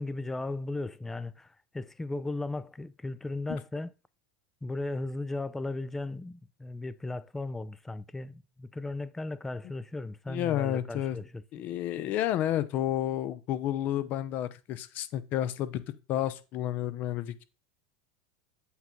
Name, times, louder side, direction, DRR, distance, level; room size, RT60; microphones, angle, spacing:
voice 1, 0.0-3.9 4.6-11.4, left 2 dB, 10° left, 0.4 m, -36 dB
voice 2, 10.3-11.2 11.5-15.8 16.1-17.4, left 12 dB, 50° left, 0.7 m, -31 dB
8.1 x 3.7 x 3.1 m
supercardioid pair, 110°, 4 cm